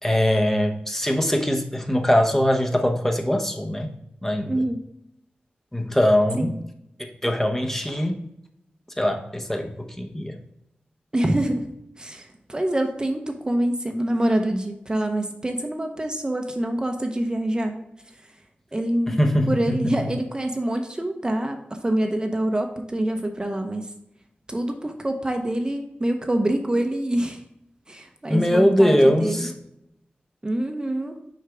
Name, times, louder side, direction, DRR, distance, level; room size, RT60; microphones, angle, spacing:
voice 1, 0.0-3.9 4.2-4.6 5.7-6.5 7.0-8.3 9.0-10.4 19.1-19.9 28.3-29.5, equal, 10° left, 4 dB, 0.8 m, -22 dB
voice 2, 4.5-4.8 6.4-6.6 11.1-11.6 12.0-17.8 18.7-19.2 19.5-23.9 24.5-27.4 27.9-29.5 30.4-31.2, right 1 dB, 25° right, 5 dB, 0.7 m, -25 dB
6.6 x 4.7 x 3.4 m, 0.81 s
wide cardioid pair, 85°, 4 cm